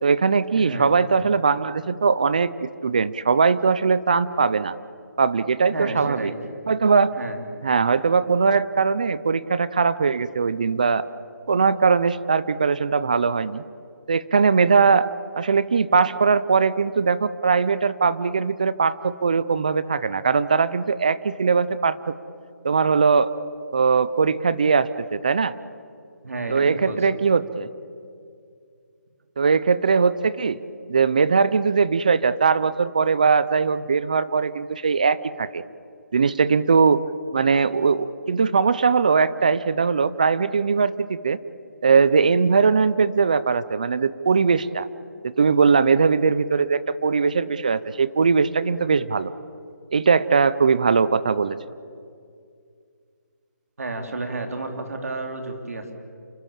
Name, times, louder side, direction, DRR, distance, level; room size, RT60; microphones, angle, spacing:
voice 1, 0.0-4.8 5.2-6.3 6.7-7.1 7.6-11.0 11.5-13.6 14.1-15.1 15.4-22.1 22.6-23.3 23.7-25.5 26.5-27.7 29.4-30.6 30.9-35.6 36.1-37.0 37.3-41.4 41.8-44.9 45.2-49.3 49.9-51.6, right 5 dB, 25° right, 16 dB, 0.5 m, -20 dB
voice 2, 0.5-0.9 5.7-6.3 7.1-7.4 26.2-27.2 53.8-55.9, right 2 dB, 60° right, 4 dB, 3.8 m, -31 dB
28.5 x 21.0 x 7.4 m, 2.3 s
hypercardioid pair, 175°, 9 cm